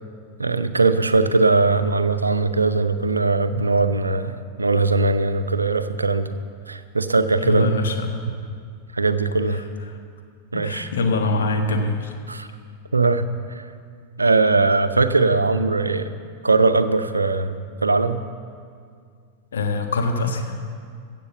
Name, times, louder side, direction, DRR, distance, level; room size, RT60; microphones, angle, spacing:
voice 1, 0.4-6.3 6.7-7.8 8.9-9.6 10.5-10.9 12.3-12.5 12.9-13.2 13.6-13.7 14.2-16.1 16.4-18.2, right 3 dB, 80° right, 11 dB, 0.6 m, -20 dB
voice 2, 7.4-8.2 9.5-10.0 10.5-12.1 19.5-20.6, left 2 dB, 65° left, 4 dB, 1.4 m, -24 dB
15.0 x 7.6 x 6.9 m, 2.2 s
figure-of-eight pair, 90°, 0 cm